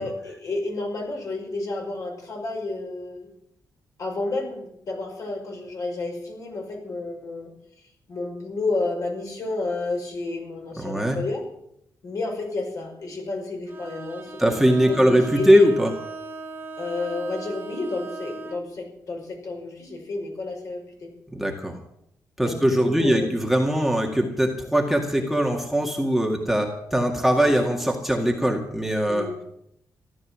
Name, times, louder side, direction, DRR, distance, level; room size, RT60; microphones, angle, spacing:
voice 1, 0.0-3.3 4.0-7.5 8.1-11.4 12.0-14.5 14.9-15.7 16.8-21.1 22.4-23.3 27.5-27.6 29.1-29.4, left 2 dB, 50° left, 1 dB, 5.3 m, -30 dB
voice 2, 10.8-11.2 14.4-15.9 21.3-21.8 22.4-29.3, right 1 dB, ahead, 0 dB, 2.0 m, -21 dB
Bowed string instrument, 13.7-18.6, right 3 dB, 30° right, 1.9 m, -38 dB
15.0 x 12.5 x 7.5 m, 0.76 s
wide cardioid pair, 140°, 7 cm